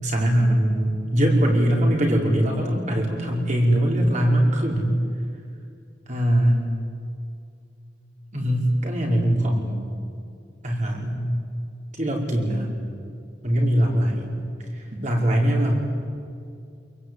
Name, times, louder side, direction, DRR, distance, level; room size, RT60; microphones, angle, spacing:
voice 1, 0.0-4.9 6.1-6.6 8.3-9.8 10.6-11.2 11.9-12.7 13.4-14.3 14.8-15.8, equal, 40° right, 0 dB, 5.2 m, -21 dB
26.0 x 23.0 x 9.7 m, 2.4 s
head